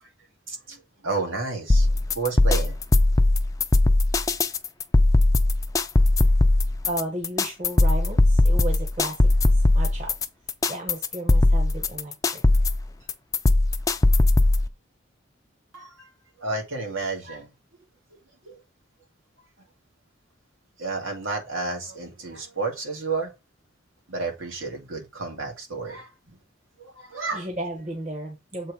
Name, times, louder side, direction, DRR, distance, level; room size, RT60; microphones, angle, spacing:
voice 1, 0.5-1.9 2.2-2.8 15.7-16.1 16.4-17.5 18.4-18.6 20.8-23.3 24.1-26.1 26.8-27.5, right 3 dB, 85° right, 2.1 m, -31 dB
sound 1, 1.7-14.7, left 2 dB, 15° left, 0.4 m, -19 dB
voice 2, 6.8-10.1 10.7-12.7 27.3-28.7, right 1 dB, 35° right, 1.0 m, -34 dB
7.4 x 3.2 x 4.7 m
head